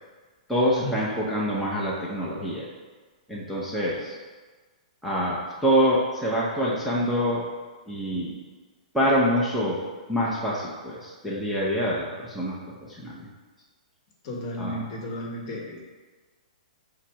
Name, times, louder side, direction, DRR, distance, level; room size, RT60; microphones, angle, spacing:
voice 1, 0.5-2.7 3.3-4.1 5.0-7.4 7.9-8.3 8.9-9.8 10.1-12.6 13.0-13.3 14.6-14.8, equal, ahead, -7 dB, 0.6 m, -25 dB
voice 2, 14.2-15.9, left 1 dB, 40° left, 0 dB, 0.9 m, -33 dB
5.8 x 2.0 x 4.6 m, 1.4 s
hypercardioid pair, 150°, 4 cm